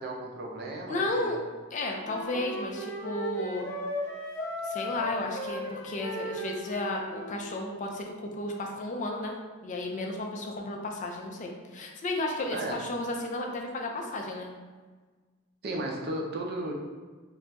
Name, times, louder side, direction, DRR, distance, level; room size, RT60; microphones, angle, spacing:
voice 1, 0.0-1.3 12.5-12.8 15.6-16.7, right 1 dB, 55° right, 0 dB, 0.5 m, -34 dB
voice 2, 0.9-1.4 1.7-3.7 4.6-9.3 9.6-14.5, left 2 dB, 40° left, 1 dB, 0.4 m, -33 dB
Wind instrument woodwind instrument, 2.0-7.4, equal, 70° left, 0.8 m, -36 dB
2.3 x 2.2 x 3.9 m, 1.4 s
head